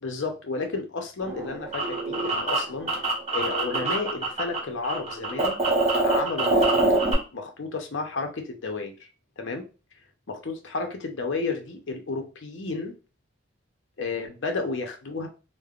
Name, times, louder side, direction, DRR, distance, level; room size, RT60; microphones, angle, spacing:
voice 1, 0.0-2.9 3.3-5.6 6.0-7.0 7.3-9.1 9.4-9.6 10.3-12.9 14.0-15.3, left 3 dB, 65° left, 4 dB, 0.6 m, -32 dB
sound 1, 1.2-4.6 4.8-7.1, right 2 dB, 30° right, 0.8 m, -24 dB
3.2 x 2.0 x 2.4 m, 0.33 s
head